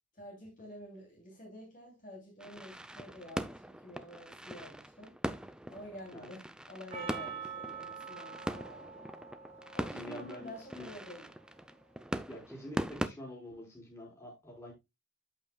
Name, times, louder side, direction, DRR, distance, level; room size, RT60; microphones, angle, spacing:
voice 1, 0.1-5.1 5.7-9.1 9.7-11.3, equal, 40° left, 2.7 m, -49 dB
sound 1, 2.4-13.1, right 1 dB, 5° right, 0.4 m, -41 dB
Percussion, 6.9-11.4, right 6 dB, 30° right, 2.6 m, -46 dB
voice 2, 9.9-10.9 12.3-14.7, left 1 dB, 15° left, 3.8 m, -46 dB
13.5 x 5.5 x 2.2 m
head